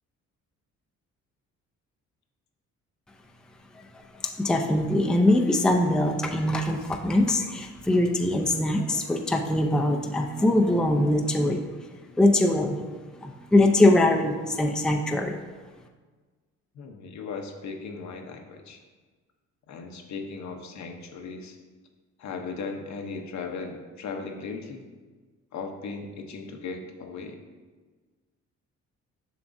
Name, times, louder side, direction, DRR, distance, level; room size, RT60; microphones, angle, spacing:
voice 1, 3.7-11.6 12.2-15.4, left 1 dB, 5° left, 2 dB, 0.5 m, -23 dB
voice 2, 16.7-18.8 19.7-21.6 22.2-24.8 25.5-27.4, left 4 dB, 65° left, 4 dB, 0.9 m, -37 dB
7.0 x 5.9 x 2.6 m, 1.4 s
cardioid pair, 90°, 30 cm